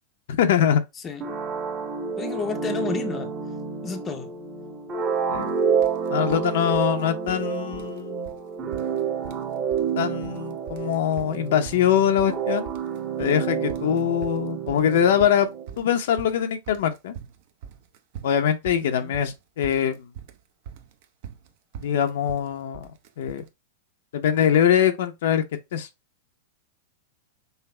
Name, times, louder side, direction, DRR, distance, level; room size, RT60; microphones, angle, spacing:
voice 1, 0.3-0.8 5.3-5.5 6.1-8.3 10.0-12.7 13.2-15.5 15.8-17.1 18.2-20.0 21.8-22.9 23.2-23.4 24.1-25.4 25.7-25.9, left 9 dB, 65° left, 0.7 m, -23 dB
sound 1, 1.2-15.8, right 6 dB, 20° right, 0.9 m, -29 dB
voice 2, 2.2-3.3 3.8-4.3 18.8-19.1, left 4 dB, 15° left, 0.6 m, -31 dB
sound 2, 5.3-5.5 5.8-6.4 6.7-7.5 7.7-8.0 8.2-8.4 8.7-9.5 9.7-10.4 10.7-23.5, right 8 dB, 50° right, 0.7 m, -42 dB
5.6 x 2.0 x 4.3 m
supercardioid pair, 160°, 0 cm